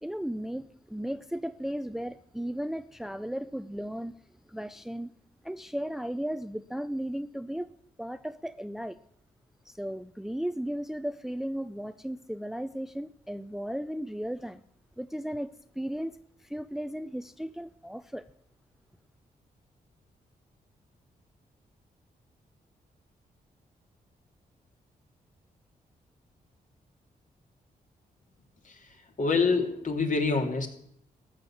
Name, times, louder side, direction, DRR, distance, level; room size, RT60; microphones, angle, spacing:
voice 1, 0.0-4.1 4.5-5.1 5.4-7.7 8.0-9.0 9.7-14.6 15.0-15.5 15.8-16.2 16.4-18.2, equal, ahead, 0.6 m, -35 dB
voice 2, 28.6-30.7, left 4 dB, 55° left, 3.0 m, -27 dB
14.5 x 8.8 x 7.4 m
cardioid pair, 65°, 16 cm